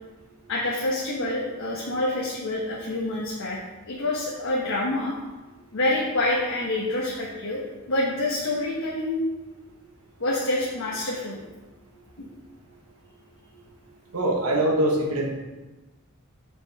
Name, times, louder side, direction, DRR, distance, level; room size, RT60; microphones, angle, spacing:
voice 1, 0.5-3.6 3.9-5.1 5.7-9.2 10.2-11.4 12.2-12.3, left 2 dB, 65° left, -5 dB, 1.1 m, -27 dB
voice 2, 14.1-15.3, right 1 dB, 75° right, -1 dB, 1.3 m, -23 dB
7.5 x 4.9 x 3.5 m, 1.1 s
head